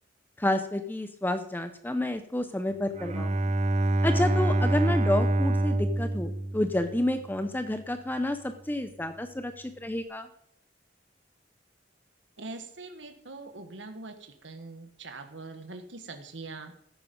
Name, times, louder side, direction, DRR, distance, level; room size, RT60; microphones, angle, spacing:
voice 1, 0.4-3.5 4.0-10.3, left 1 dB, 10° left, 9 dB, 0.7 m, -30 dB
Bowed string instrument, 2.9-7.3, right 2 dB, 35° right, 0.8 m, -26 dB
voice 2, 12.4-14.1 14.4-16.7, right 3 dB, 90° right, 6 dB, 1.6 m, -42 dB
14.0 x 10.0 x 5.3 m, 0.69 s
head